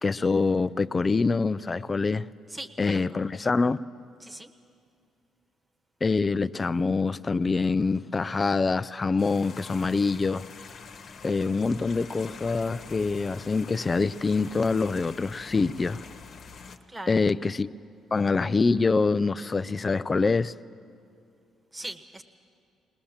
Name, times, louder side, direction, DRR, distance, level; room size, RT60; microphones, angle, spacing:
voice 1, 0.0-2.3 2.8-3.9 6.0-10.5 11.2-16.0 17.1-17.7 18.1-20.5, left 4 dB, 30° left, 0.5 m, -25 dB
voice 2, 2.5-3.0 4.2-4.5 16.9-17.2 21.7-22.2, right 1 dB, 20° right, 1.4 m, -40 dB
sound 1, 9.2-16.8, left 5 dB, 60° left, 1.2 m, -45 dB
20.5 x 19.5 x 7.3 m
hypercardioid pair, 55°, 0 cm